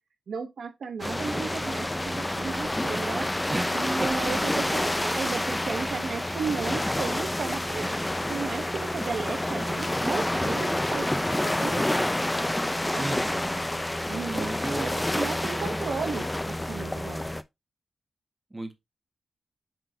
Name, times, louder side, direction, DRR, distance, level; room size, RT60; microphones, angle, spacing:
voice 1, 0.3-3.4 3.7-8.0 8.3-12.1 12.9-13.2 14.1-17.3, right 5 dB, 75° right, 0.9 m, -34 dB
sound 1, 1.0-17.4, left 1 dB, 15° left, 0.5 m, -28 dB
voice 2, 3.5-4.3 13.0-13.6 14.3-14.9 18.5-18.7, right 2 dB, 25° right, 1.6 m, -34 dB
7.7 x 4.6 x 2.7 m
cardioid pair, 55°, 0 cm